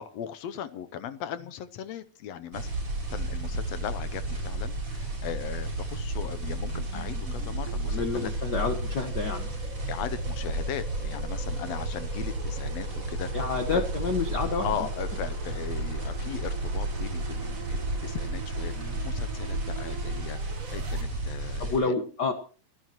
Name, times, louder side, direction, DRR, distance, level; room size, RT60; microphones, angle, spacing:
voice 1, 0.0-2.7 3.1-8.3 9.9-13.8 14.6-22.0, left 9 dB, 70° left, 12 dB, 1.8 m, -38 dB
sound 1, 2.5-21.8, right 1 dB, 45° right, 7.4 m, -32 dB
sound 2, 6.2-21.0, right 6 dB, 60° right, 0.8 m, -45 dB
voice 2, 7.9-9.5 13.3-14.6 18.8-19.0 21.6-22.3, left 4 dB, 55° left, 7 dB, 1.2 m, -29 dB
29.5 x 10.5 x 3.0 m, 0.38 s
omnidirectional pair, 3.5 m